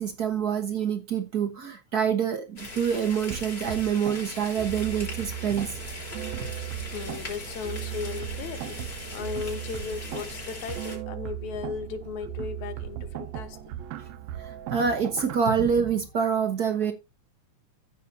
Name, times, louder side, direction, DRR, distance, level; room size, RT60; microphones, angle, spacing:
voice 1, 0.0-5.8 14.0-14.1 14.4-16.9, right 7 dB, 60° right, 1.0 m, -26 dB
sound 1, 2.6-11.0, left 3 dB, 30° left, 4.7 m, -40 dB
sound 2, 3.3-15.4, right 13 dB, 75° right, 1.9 m, -37 dB
voice 2, 6.9-8.8 9.1-13.6, left 7 dB, 80° left, 2.4 m, -36 dB
14.5 x 6.7 x 2.7 m
omnidirectional pair, 3.3 m